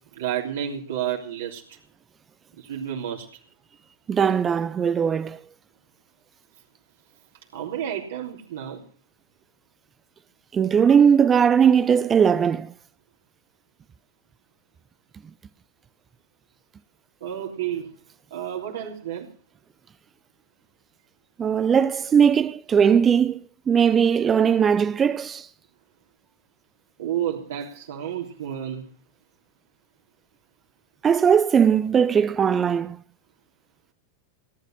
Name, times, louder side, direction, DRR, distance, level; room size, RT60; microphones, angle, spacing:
voice 1, 0.1-1.8 2.6-3.3 7.5-8.8 17.2-17.9 18.3-19.3 27.0-28.8, right 10 dB, 60° right, 3.3 m, -30 dB
voice 2, 4.1-5.4 10.5-12.7 21.4-23.4 23.7-25.5 31.0-33.0, right 7 dB, 20° right, 0.6 m, -19 dB
18.5 x 11.0 x 6.2 m
figure-of-eight pair, 90°, 0 cm